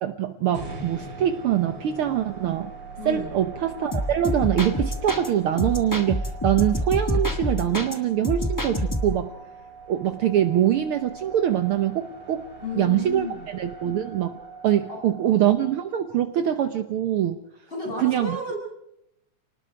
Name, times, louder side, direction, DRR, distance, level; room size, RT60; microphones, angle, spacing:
voice 1, 0.0-2.7 3.0-9.3 9.9-12.4 12.7-13.3 13.5-14.4 14.6-17.4 18.0-18.4, right 11 dB, 75° right, 8 dB, 1.2 m, -23 dB
sound 1, 0.5-16.7, right 4 dB, 30° right, 4.2 m, -42 dB
voice 2, 3.0-3.3 12.6-13.5 14.9-15.4 17.7-18.6, left 1 dB, 15° left, -1 dB, 7.7 m, -33 dB
sound 2, 3.9-5.3 5.6-7.9 8.2-9.2, equal, 30° left, 0.3 m, -27 dB
29.0 x 19.5 x 4.6 m, 0.79 s
omnidirectional pair, 3.7 m